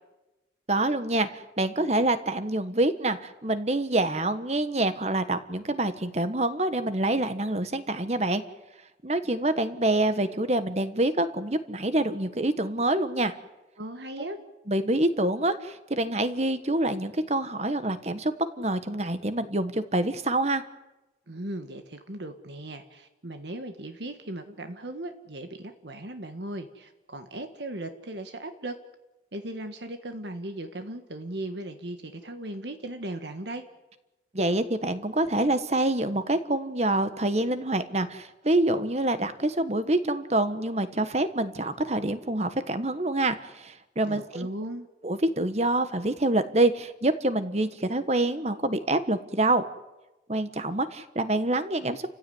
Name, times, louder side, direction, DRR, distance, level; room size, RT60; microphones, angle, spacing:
voice 1, 0.7-8.4 9.0-13.3 14.7-20.6 34.3-44.5 45.0-49.6 50.3-52.1, right 2 dB, 35° right, 11 dB, 1.4 m, -26 dB
voice 2, 13.8-14.4 21.3-28.8 29.3-33.6 44.1-44.9, right 1 dB, 70° right, 7 dB, 1.6 m, -37 dB
30.0 x 15.5 x 9.5 m, 1.0 s
head